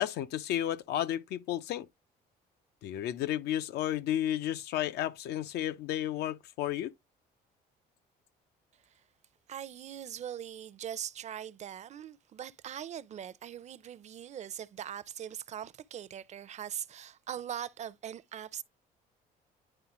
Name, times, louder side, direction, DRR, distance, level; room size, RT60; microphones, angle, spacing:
voice 1, 0.0-1.9 2.8-6.9, left 12 dB, 75° left, 0.6 m, -32 dB
voice 2, 9.5-18.6, right 9 dB, 45° right, 0.5 m, -41 dB
10.0 x 3.6 x 3.0 m
cardioid pair, 110°, 17 cm